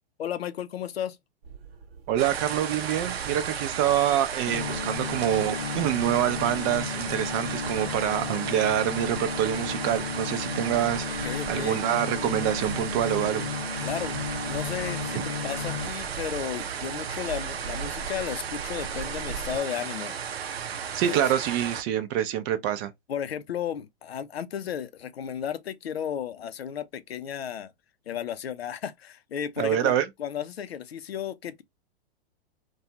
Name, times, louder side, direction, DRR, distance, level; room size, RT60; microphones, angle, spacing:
voice 1, 0.2-1.2 11.2-11.8 13.8-14.1 14.5-20.2 21.0-21.2 23.1-27.7 28.1-29.9 30.2-31.6, left 9 dB, 90° left, 0.5 m, -34 dB
sound 1, 1.4-19.6, right 5 dB, 70° right, 1.0 m, -42 dB
voice 2, 2.1-13.5 20.9-22.9 29.6-30.1, right 11 dB, 35° right, 0.5 m, -26 dB
sound 2, 2.2-21.8, right 7 dB, 90° right, 0.6 m, -35 dB
sound 3, 4.5-15.9, left 7 dB, 50° left, 0.7 m, -34 dB
2.5 x 2.3 x 2.7 m
hypercardioid pair, 115°, 30 cm